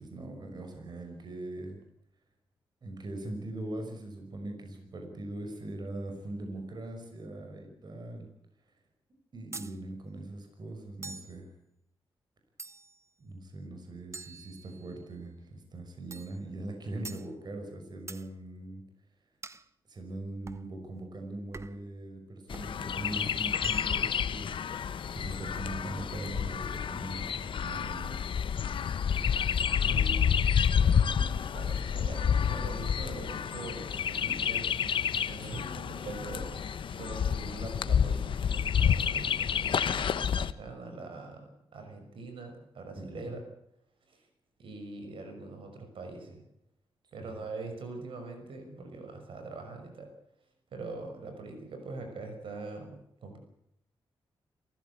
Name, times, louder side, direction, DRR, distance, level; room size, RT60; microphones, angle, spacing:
voice 1, 0.0-1.8 2.8-8.3 9.3-11.5 13.2-18.8 19.9-28.3 35.4-35.7 43.0-43.4 47.2-47.4, right 2 dB, 50° right, 4 dB, 5.8 m, -41 dB
sound 1, 9.5-9.8 11.0-11.4 12.6-13.0 14.1-15.0 16.1-16.4 17.0-17.3 18.1-18.3 19.4-19.7 20.5-20.7 21.5-21.9 22.5-22.7 23.5-24.1, right 3 dB, 30° right, 1.0 m, -45 dB
Chirp tweet, 22.5-40.5, left 7 dB, 65° left, 1.1 m, -29 dB
voice 2, 29.8-30.2 30.8-34.7 35.0-43.4 44.1-44.2 44.6-46.4 47.1-50.1 50.7-53.4, right 3 dB, 75° right, 5 dB, 5.9 m, -43 dB
27.5 x 15.5 x 8.5 m, 0.78 s
cardioid pair, 90°, 9 cm